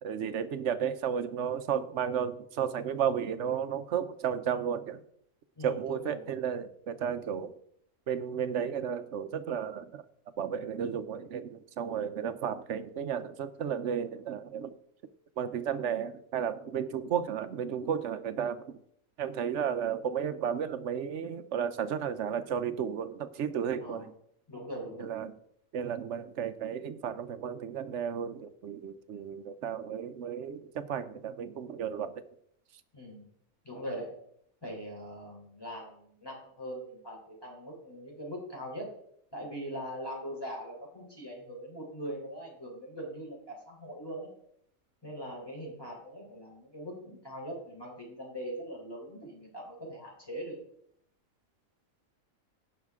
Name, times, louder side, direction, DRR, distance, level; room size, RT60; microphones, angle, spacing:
voice 1, 0.0-5.0 5.6-7.5 8.1-10.0 10.4-14.7 15.4-18.8 19.2-24.1 25.0-25.3 25.7-32.2, right 8 dB, 65° right, 12 dB, 0.9 m, -33 dB
voice 2, 5.5-6.2 23.8-24.1 24.5-25.1 32.9-33.3 33.6-34.1 34.6-38.9 39.3-44.3 45.0-50.5, equal, 15° left, -2 dB, 3.5 m, -41 dB
17.0 x 5.8 x 3.6 m, 0.69 s
omnidirectional pair, 1.5 m